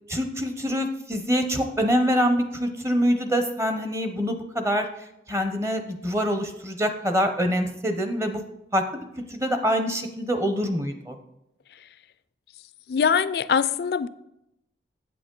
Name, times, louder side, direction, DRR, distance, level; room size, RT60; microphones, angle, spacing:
voice 1, 0.1-4.9 5.3-8.4 8.7-9.0 9.3-11.1, equal, 15° right, 0.7 m, -25 dB
voice 2, 12.9-14.1, left 6 dB, 60° left, 0.3 m, -22 dB
8.3 x 7.7 x 3.8 m
head